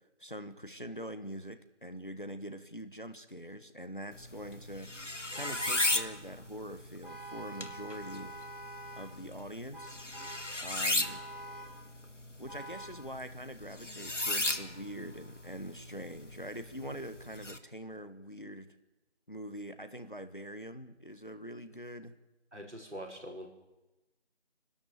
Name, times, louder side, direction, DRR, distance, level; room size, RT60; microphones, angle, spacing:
voice 1, 0.2-4.9 5.3-8.3 9.0-10.0 10.6-11.2 12.4-18.7 19.3-22.2, equal, 45° left, 10 dB, 1.3 m, -44 dB
sound 1, 4.1-17.6, left 2 dB, 85° left, 1.8 m, -37 dB
Vehicle horn car horn honking, 5.3-6.2 7.0-9.2 9.7-10.6 11.0-11.9 12.5-13.1, right 1 dB, 45° right, 5.2 m, -46 dB
voice 2, 22.5-23.5, equal, 75° right, 1 dB, 5.3 m, -43 dB
25.0 x 12.5 x 9.0 m, 1.0 s
figure-of-eight pair, 180°, 35 cm